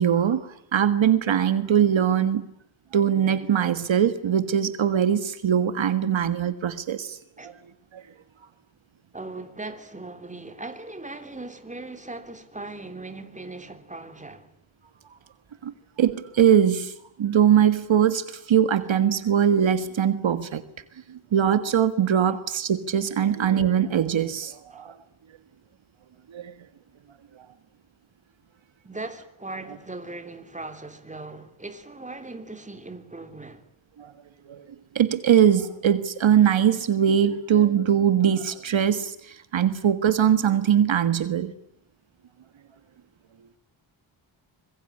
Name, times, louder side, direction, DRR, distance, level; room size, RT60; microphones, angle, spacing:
voice 1, 0.0-2.4 2.9-7.2 7.4-7.5 7.9-8.0 15.6-15.7 16.0-16.9 17.2-20.6 21.1-24.9 26.3-26.5 34.0-34.1 34.5-34.6 35.0-41.5, right 9 dB, 70° right, 1.7 m, -21 dB
voice 2, 9.1-14.5 24.7-24.8 28.8-33.6, right 2 dB, 15° right, 3.2 m, -39 dB
25.5 x 21.5 x 9.8 m
wide cardioid pair, 110°, 48 cm